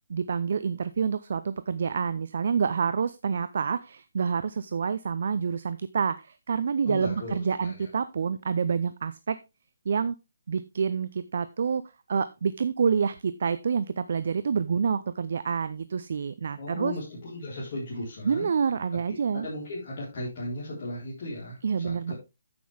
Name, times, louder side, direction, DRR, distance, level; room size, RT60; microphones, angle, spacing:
voice 1, 0.1-9.4 9.9-10.2 10.5-11.8 12.1-16.9 18.2-19.5 21.6-22.1, right 6 dB, 55° right, 14 dB, 0.6 m, -27 dB
voice 2, 6.8-7.9 16.6-18.5 19.1-22.1, left 1 dB, 45° left, -6 dB, 4.1 m, -36 dB
9.6 x 8.5 x 3.5 m, 0.25 s
figure-of-eight pair, 140°, 0 cm